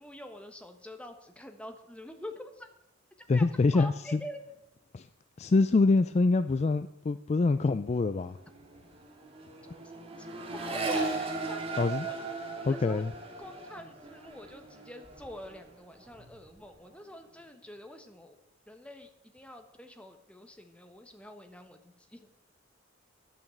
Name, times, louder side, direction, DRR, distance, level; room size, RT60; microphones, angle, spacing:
voice 1, 0.0-2.7 3.2-3.5 3.7-4.4 10.2-11.7 12.0-12.2 12.5-13.0 13.4-18.4 18.7-22.3, left 1 dB, 5° left, 6 dB, 1.3 m, -46 dB
voice 2, 3.3-4.2 4.9-5.1 5.4-8.4 11.8-12.1 12.7-13.1, left 3 dB, 35° left, 13 dB, 0.3 m, -25 dB
Accelerating revving vroom, 7.8-7.9 8.2-15.7 16.0-16.6, right 3 dB, 30° right, 2.2 m, -37 dB
11.0 x 9.0 x 7.7 m, 0.84 s
head